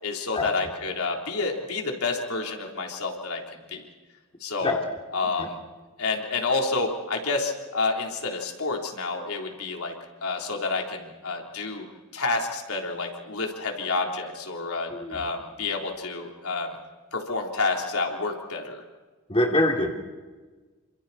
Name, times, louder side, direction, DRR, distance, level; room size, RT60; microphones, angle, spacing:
voice 1, 0.0-3.8 4.4-4.8 5.1-5.6 6.0-9.9 10.2-11.9 12.1-16.8 17.1-18.8, left 3 dB, 85° left, 1 dB, 3.6 m, -29 dB
voice 2, 14.9-15.3 19.3-19.9, left 1 dB, 25° left, 0 dB, 2.8 m, -24 dB
28.5 x 26.5 x 4.3 m, 1.3 s
head